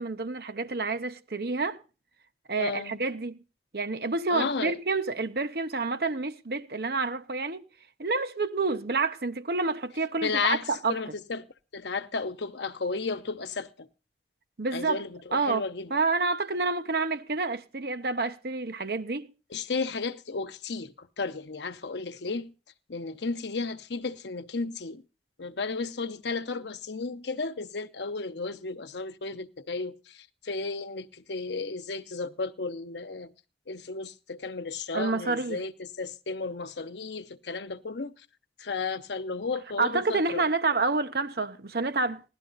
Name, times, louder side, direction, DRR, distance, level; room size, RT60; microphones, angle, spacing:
voice 1, 0.0-1.8 2.5-3.4 3.7-7.6 8.0-11.0 14.6-15.0 15.3-15.6 15.9-19.3 34.9-35.6 39.8-42.2, right 3 dB, 60° right, 0.9 m, -28 dB
voice 2, 2.6-3.0 4.3-4.7 10.2-10.6 10.9-11.5 11.7-13.9 14.7-15.9 19.5-22.5 22.9-25.0 25.4-33.3 33.7-38.1 38.6-40.4, left 4 dB, 80° left, 0.9 m, -33 dB
16.5 x 12.0 x 4.0 m
head